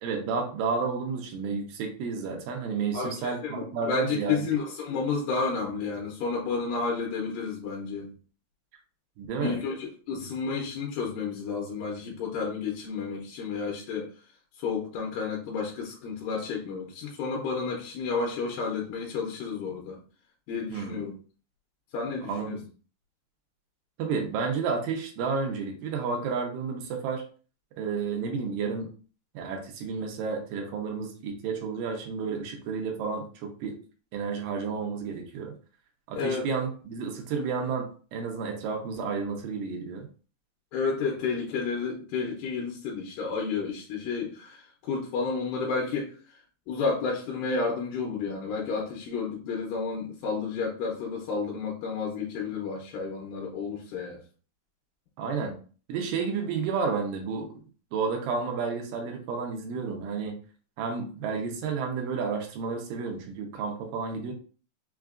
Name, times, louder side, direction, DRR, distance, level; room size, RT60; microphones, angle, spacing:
voice 1, 0.0-4.6 9.2-9.6 20.7-21.0 22.2-22.6 24.0-27.2 27.8-28.9 29.3-33.8 34.1-35.5 36.1-40.1 55.2-55.6 55.9-57.5 57.9-60.3 60.8-64.3, right 5 dB, 80° right, 3 dB, 2.4 m, -31 dB
voice 2, 2.9-8.1 9.4-14.1 14.6-20.0 20.5-21.1 21.9-22.6 36.2-36.5 40.7-46.2 46.7-54.2, left 4 dB, 75° left, -2 dB, 2.3 m, -31 dB
5.7 x 2.5 x 2.4 m, 0.39 s
omnidirectional pair, 4.1 m